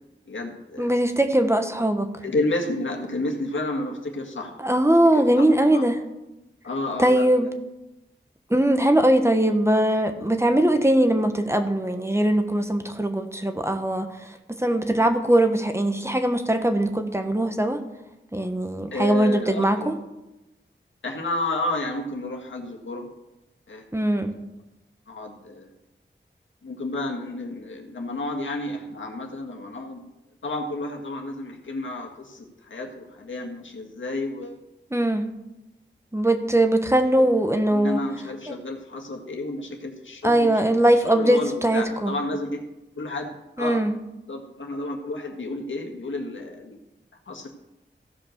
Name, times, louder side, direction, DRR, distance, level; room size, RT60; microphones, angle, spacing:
voice 1, 0.3-0.9 2.2-4.5 5.1-5.9 6.6-7.4 18.9-20.0 21.0-23.1 23.7-24.4 25.1-25.7 26.6-30.0 30.4-34.6 37.7-40.7 41.1-42.6 43.0-43.8 44.3-46.8 47.3-47.5, left 2 dB, 75° left, 1 dB, 1.9 m, -31 dB
voice 2, 0.8-2.1 4.6-6.0 7.0-7.5 8.5-14.3 14.6-17.8 18.3-19.9 23.9-24.3 34.9-35.2 36.1-38.0 38.5-38.6 40.2-42.1 43.6-43.9, right 1 dB, 15° right, 7 dB, 1.1 m, -21 dB
15.5 x 5.2 x 6.6 m, 0.96 s
wide cardioid pair, 65°, 20 cm